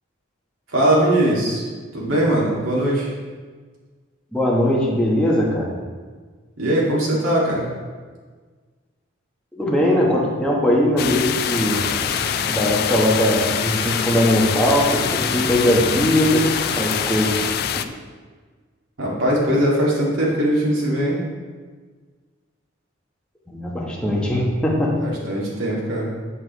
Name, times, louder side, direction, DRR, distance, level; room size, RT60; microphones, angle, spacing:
voice 1, 0.7-1.6 1.9-3.1 6.6-7.7 19.0-21.2 25.0-26.1, right 1 dB, 85° right, -5 dB, 2.1 m, -20 dB
voice 2, 4.3-5.7 9.5-11.8 12.4-16.4 16.8-17.5 23.5-24.9, equal, 5° left, -4 dB, 1.1 m, -20 dB
sound 1, 11.0-17.8, left 9 dB, 50° left, 0.3 m, -25 dB
sound 2, 11.5-17.5, left 2 dB, 25° left, 0.7 m, -32 dB
8.1 x 7.4 x 3.1 m, 1.5 s
head